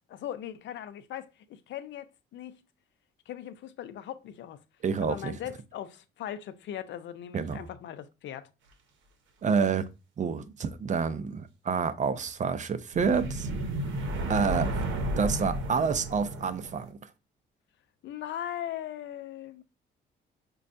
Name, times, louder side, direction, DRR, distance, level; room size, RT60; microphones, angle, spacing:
voice 1, 0.1-2.6 3.3-4.6 5.0-8.5 18.0-19.6, left 11 dB, 65° left, 0.5 m, -39 dB
voice 2, 4.8-5.3 7.3-7.6 9.4-9.9 10.2-13.5 14.3-14.8 15.2-17.0, right 5 dB, 40° right, 0.5 m, -28 dB
sound 1, 12.9-16.9, right 1 dB, 75° right, 0.8 m, -32 dB
5.2 x 2.3 x 2.5 m
cardioid pair, 90°, 20 cm